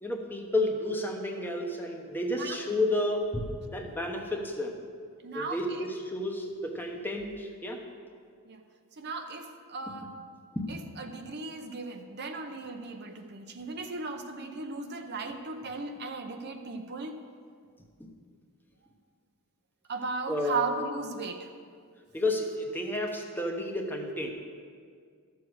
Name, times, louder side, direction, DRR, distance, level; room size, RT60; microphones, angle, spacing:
voice 1, 0.0-4.8 5.3-7.8 10.5-10.7 18.0-18.1 20.3-20.7 22.1-24.3, left 1 dB, 10° left, 2 dB, 1.0 m, -31 dB
voice 2, 5.2-5.9 8.5-8.6 9.0-10.1 10.7-17.2 19.9-21.5, right 3 dB, 50° right, 5 dB, 0.7 m, -36 dB
13.0 x 7.0 x 6.3 m, 2.1 s
head